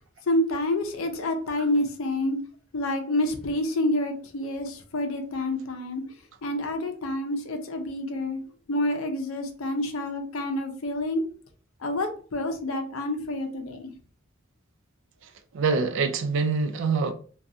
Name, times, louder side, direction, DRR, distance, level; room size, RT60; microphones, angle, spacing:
voice 1, 0.3-2.4 2.7-6.0 6.4-8.4 8.7-11.3 11.8-13.9, left 1 dB, 75° left, 0.5 m, -28 dB
voice 2, 15.5-17.1, right 4 dB, 65° right, 0.4 m, -24 dB
2.5 x 2.3 x 2.7 m
head